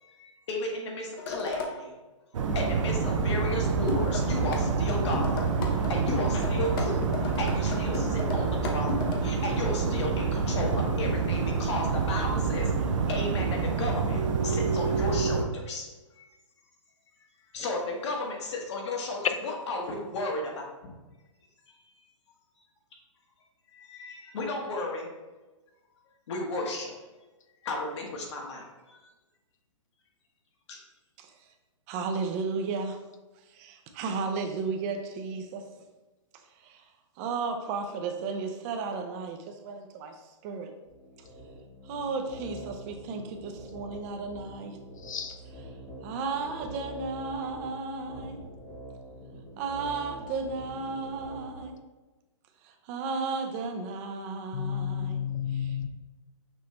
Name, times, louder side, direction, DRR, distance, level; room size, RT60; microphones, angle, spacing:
voice 1, 0.0-1.9 2.5-5.5 5.9-15.9 16.1-16.2 17.5-20.9 21.7-22.1 23.7-25.1 26.3-26.9 27.6-29.0 30.7-30.8, left 2 dB, 60° left, 1.3 m, -34 dB
sound 1, 1.2-1.7 3.9-4.6 4.9-9.2, left 5 dB, 45° left, 0.8 m, -34 dB
sound 2, 2.3-15.4, right 5 dB, 70° right, 0.6 m, -27 dB
voice 2, 19.2-19.6 45.0-45.4 54.5-55.9, left 8 dB, 85° left, 0.5 m, -31 dB
voice 3, 31.9-33.0 33.5-35.6 36.6-36.8 37.2-40.7 41.8-44.8 46.0-48.4 49.6-51.8 52.6-55.2, right 4 dB, 30° right, 0.5 m, -34 dB
sound 3, 40.9-51.6, right 1 dB, 5° left, 1.0 m, -45 dB
6.1 x 2.7 x 3.2 m
hypercardioid pair, 145°, 17 cm